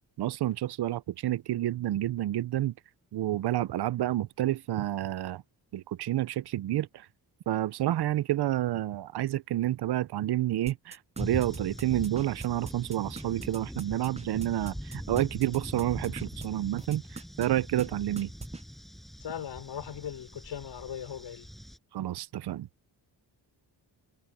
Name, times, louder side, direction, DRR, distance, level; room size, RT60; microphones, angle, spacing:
voice 1, 0.2-2.7 3.1-5.4 5.7-7.1 7.5-18.3 21.9-22.7, right 14 dB, 65° right, 0.6 m, -29 dB
sound 1, 10.7-16.5 16.8-17.5 17.8-17.9 18.2-18.6, right 4 dB, 15° right, 0.6 m, -41 dB
sound 2, 11.2-21.8, equal, ahead, 5.7 m, -42 dB
voice 2, 19.2-21.5, left 9 dB, 90° left, 4.5 m, -39 dB
wide cardioid pair, 130°, 42 cm